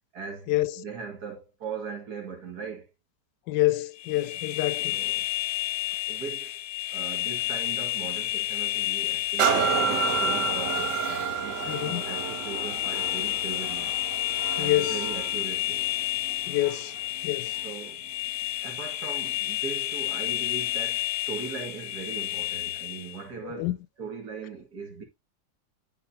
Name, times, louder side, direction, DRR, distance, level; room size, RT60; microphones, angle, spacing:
voice 1, 0.1-2.9 4.9-5.3 6.1-6.5 6.9-14.0 14.6-15.8 17.2-17.3 17.6-18.0 18.6-23.7 24.0-25.0, right 5 dB, 65° right, 2.4 m, -39 dB
voice 2, 3.5-5.0 11.7-12.0 14.6-15.0 16.5-16.9 17.2-17.6 23.4-23.8, left 16 dB, 85° left, 1.2 m, -27 dB
sound 1, 4.0-23.2, left 16 dB, 70° left, 0.9 m, -31 dB
sound 2, 9.4-17.0 17.6-17.7, right 7 dB, 85° right, 1.5 m, -30 dB
11.0 x 4.5 x 2.8 m
omnidirectional pair, 1.8 m